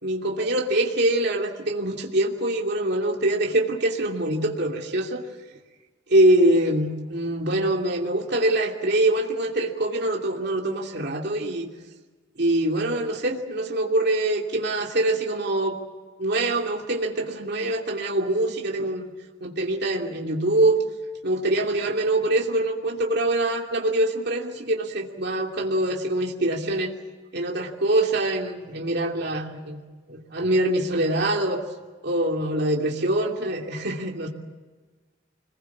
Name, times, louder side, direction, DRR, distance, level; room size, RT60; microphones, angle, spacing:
voice 1, 0.0-5.2 6.1-11.7 12.4-15.8 16.2-19.1 19.4-20.8 21.2-26.9 27.3-29.8 30.1-31.6 32.0-34.3, right 1 dB, 55° right, 0 dB, 2.8 m, -24 dB
26.5 x 21.5 x 7.4 m, 1.3 s
head